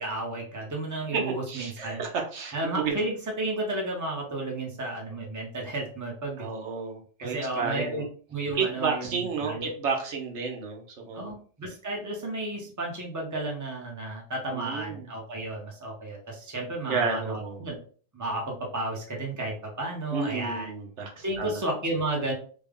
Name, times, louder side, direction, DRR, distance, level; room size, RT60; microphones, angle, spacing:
voice 1, 0.0-2.0 2.5-6.5 7.2-8.0 8.3-9.7 11.1-17.8 18.1-20.7 21.2-22.3, right 2 dB, 15° right, -1 dB, 0.8 m, -32 dB
voice 2, 1.5-3.0 6.4-8.0 8.5-11.3 14.5-15.1 16.9-17.6 20.1-21.6, right 5 dB, 80° right, 2 dB, 1.1 m, -31 dB
3.5 x 2.2 x 3.6 m, 0.43 s
omnidirectional pair, 1.2 m